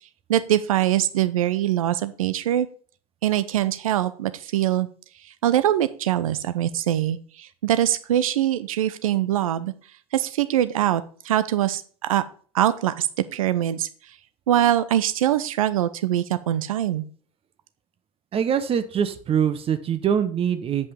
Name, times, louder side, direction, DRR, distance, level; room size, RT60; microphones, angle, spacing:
voice 1, 0.3-2.7 3.2-4.9 5.4-9.7 10.1-11.8 12.1-12.2 12.5-13.1 13.3-13.9 14.5-17.0, right 12 dB, 70° right, 13 dB, 0.7 m, -23 dB
voice 2, 18.3-20.9, right 8 dB, 30° right, 10 dB, 1.0 m, -23 dB
7.9 x 5.5 x 5.2 m, 0.42 s
figure-of-eight pair, 75°, 19 cm